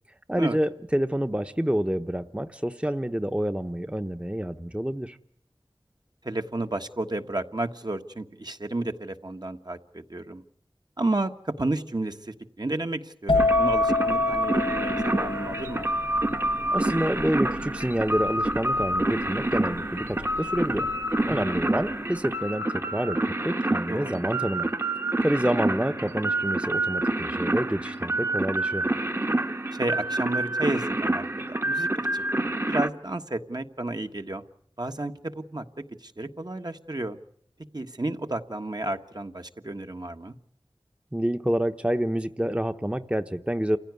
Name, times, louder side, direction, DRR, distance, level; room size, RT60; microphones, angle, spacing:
voice 1, 0.3-5.2 16.7-20.9 21.3-23.2 23.4-24.7 25.2-28.9 41.1-43.8, right 1 dB, 15° right, 9 dB, 0.9 m, -28 dB
voice 2, 6.2-10.4 11.0-15.9 21.2-21.6 23.9-24.2 29.7-31.9 32.1-32.2 32.7-34.4 34.8-37.2 37.7-40.4, right 2 dB, 50° right, 6 dB, 1.5 m, -32 dB
sound 1, 13.3-20.9 21.1-21.6, left 3 dB, 90° left, 1.6 m, -28 dB
sound 2, 13.4-32.9, right 1 dB, 30° right, 1.2 m, -27 dB
28.5 x 16.0 x 9.5 m, 0.67 s
wide cardioid pair, 50°, 9 cm